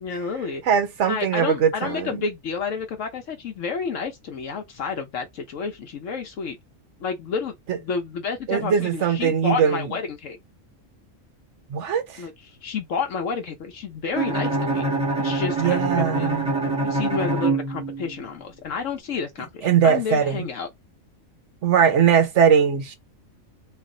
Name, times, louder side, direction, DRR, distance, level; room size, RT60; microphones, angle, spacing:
voice 1, 0.0-0.6 1.0-6.6 7.0-10.4 12.2-14.8 15.2-16.3 16.8-20.7, left 5 dB, 70° left, 1.0 m, -30 dB
voice 2, 0.7-2.2 7.7-7.8 8.5-9.9 11.7-12.2 15.6-16.5 19.6-20.5 21.6-23.0, right 7 dB, 65° right, 1.1 m, -20 dB
Bowed string instrument, 14.1-18.3, right 2 dB, 5° right, 1.2 m, -25 dB
3.3 x 2.5 x 3.7 m
omnidirectional pair, 1.4 m